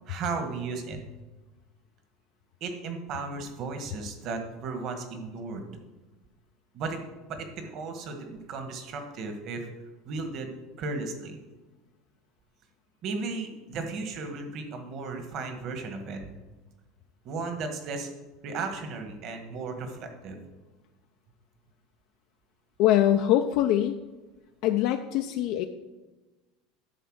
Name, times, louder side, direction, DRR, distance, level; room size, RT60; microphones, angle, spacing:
voice 1, 0.1-1.1 2.6-5.7 6.7-7.0 7.3-9.7 10.0-11.4 13.0-16.3 17.2-18.1 18.4-20.4, right 4 dB, 40° right, 5 dB, 1.4 m, -35 dB
voice 2, 22.8-24.0 24.6-25.6, left 12 dB, 55° left, 6 dB, 0.4 m, -23 dB
11.0 x 4.1 x 6.3 m, 1.2 s
cardioid pair, 160°, 0 cm